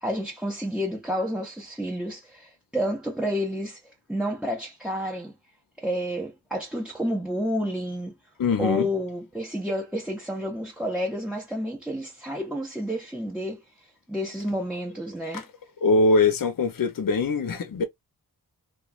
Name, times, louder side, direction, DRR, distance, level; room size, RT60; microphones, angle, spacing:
voice 1, 0.0-3.8 4.1-5.3 5.8-8.1 8.6-13.6 14.1-15.5, equal, ahead, 0.6 m, -30 dB
voice 2, 8.4-8.9 15.3-15.4 15.8-17.8, left 3 dB, 55° left, 0.6 m, -22 dB
3.0 x 2.4 x 2.3 m
wide cardioid pair, 80°, 40 cm